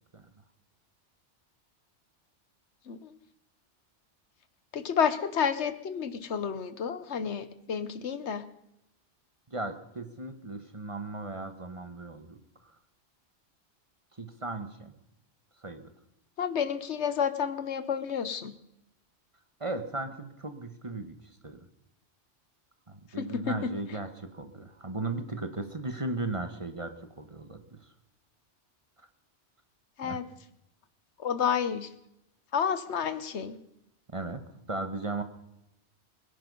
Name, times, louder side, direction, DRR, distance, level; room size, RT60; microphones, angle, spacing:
voice 1, 4.7-8.5 16.4-18.5 23.2-23.5 30.0-30.2 31.2-31.9 32.5-33.6, left 7 dB, 75° left, 13 dB, 1.2 m, -30 dB
voice 2, 9.5-12.4 14.2-14.9 15.6-15.9 19.6-21.1 21.4-21.7 22.9-27.8 29.0-29.1 30.0-30.2 34.1-34.4 34.7-35.2, right 2 dB, 30° right, 8 dB, 1.2 m, -36 dB
22.0 x 10.5 x 5.4 m, 0.84 s
omnidirectional pair, 1.2 m